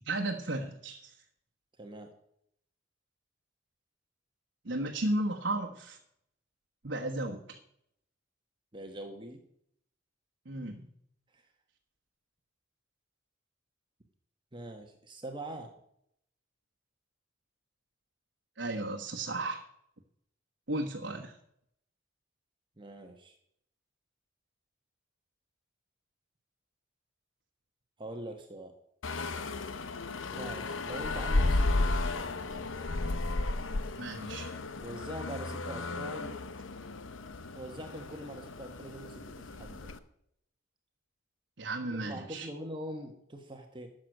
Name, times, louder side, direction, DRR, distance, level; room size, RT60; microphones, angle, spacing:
voice 1, 0.0-1.1 4.6-6.0 6.8-7.6 10.4-10.8 18.6-19.7 20.7-21.4 34.0-34.5 41.6-42.5, right 2 dB, 65° right, 1 dB, 1.2 m, -34 dB
voice 2, 1.8-2.1 8.7-9.4 11.3-11.5 14.5-15.7 22.8-23.3 28.0-28.7 30.3-32.6 34.8-36.4 37.5-39.9 41.9-43.9, right 1 dB, 25° right, 4 dB, 1.2 m, -43 dB
sound 1, 29.0-40.0, left 2 dB, 90° left, 0.9 m, -33 dB
12.5 x 7.7 x 6.5 m, 0.72 s
head